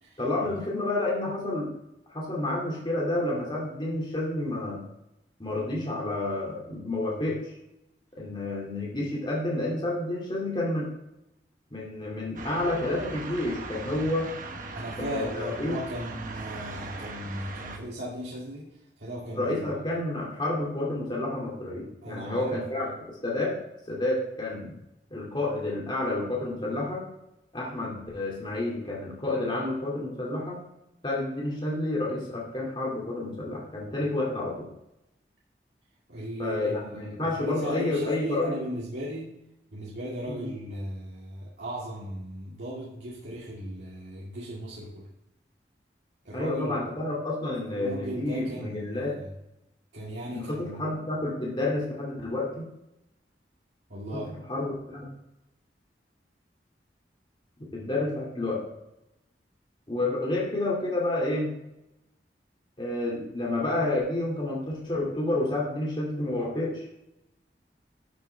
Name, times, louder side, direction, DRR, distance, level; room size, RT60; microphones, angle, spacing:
voice 1, 0.2-1.7 2.1-4.8 5.4-7.6 8.2-10.9 11.7-14.3 15.0-15.7 19.3-23.6 23.9-24.8 25.1-27.0 27.5-30.6 31.0-34.7 36.4-38.5 40.3-40.5 46.3-49.1 50.3-52.7 54.5-55.0 57.7-58.6 59.9-61.5 62.8-66.9, left 2 dB, 30° left, -4 dB, 2.5 m, -30 dB
sound 1, 12.4-17.8, right 3 dB, 50° right, 1.1 m, -39 dB
voice 2, 14.7-19.8 22.0-22.9 36.1-39.3 39.7-45.1 46.2-46.8 47.7-49.3 49.9-50.9 53.9-54.3, right 1 dB, 75° right, -6 dB, 2.3 m, -37 dB
12.5 x 7.2 x 3.4 m, 0.88 s
head